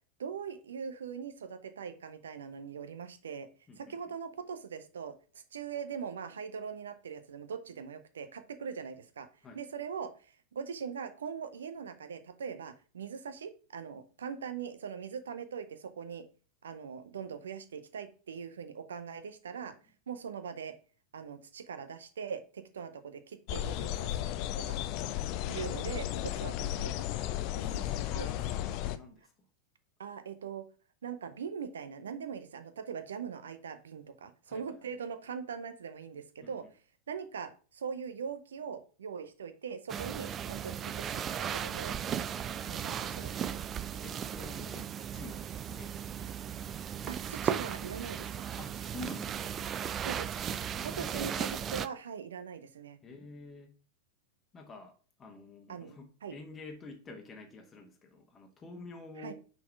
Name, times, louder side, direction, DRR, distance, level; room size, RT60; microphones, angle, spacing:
voice 1, 0.2-3.5 3.8-5.1 5.5-9.3 9.5-16.2 16.6-19.7 20.1-20.7 21.1-24.3 24.6-24.8 25.5-27.1 27.5-27.9 28.1-28.3 30.0-30.6 31.0-36.6 37.1-42.0 42.7-43.5 43.9-44.0 47.1-48.4 50.0-50.4 50.8-53.0 55.7-56.4 59.2-59.3, right 6 dB, 65° right, 0.7 m, -41 dB
sound 1, 23.5-29.0, left 12 dB, 45° left, 0.5 m, -34 dB
voice 2, 27.6-29.3 34.4-34.8 36.4-36.7 43.1-43.6 44.0-46.7 48.6-49.6 50.7-51.3 53.0-53.7 54.5-59.3, left 3 dB, 20° left, 1.2 m, -49 dB
sound 2, 39.9-51.9, right 9 dB, 25° right, 0.4 m, -36 dB
5.9 x 4.0 x 4.6 m
figure-of-eight pair, 90°, 0 cm